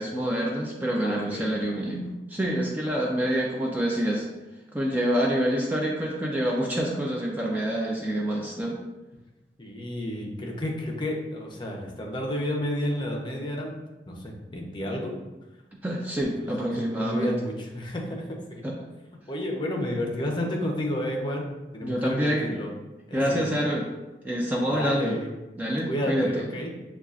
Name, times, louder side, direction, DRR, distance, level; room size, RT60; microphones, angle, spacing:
voice 1, 0.0-4.2 4.7-8.8 15.8-17.3 18.6-18.8 21.8-22.6 23.1-23.9 24.2-25.2 25.6-26.4, equal, 10° right, -2 dB, 0.4 m, -27 dB
voice 2, 1.0-1.5 9.6-13.8 14.1-15.1 16.3-18.6 19.3-21.5 21.7-22.7 23.1-23.5 24.6-25.3 25.9-26.7, left 1 dB, 25° left, -1 dB, 0.6 m, -31 dB
6.8 x 2.3 x 2.4 m, 1.1 s
head